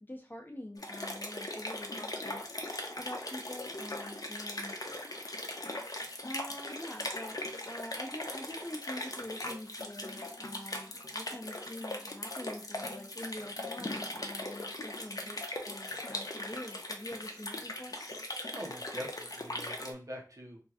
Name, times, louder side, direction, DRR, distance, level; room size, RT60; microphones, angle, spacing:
voice 1, 0.0-4.7 6.2-15.4 15.6-17.9, left 1 dB, 25° left, 2 dB, 1.0 m, -45 dB
sound 1, 0.8-19.9, left 1 dB, 55° left, 0.7 m, -40 dB
voice 2, 18.5-20.6, equal, 50° right, -1 dB, 1.1 m, -43 dB
3.0 x 2.7 x 3.6 m, 0.35 s
wide cardioid pair, 40°, 7 cm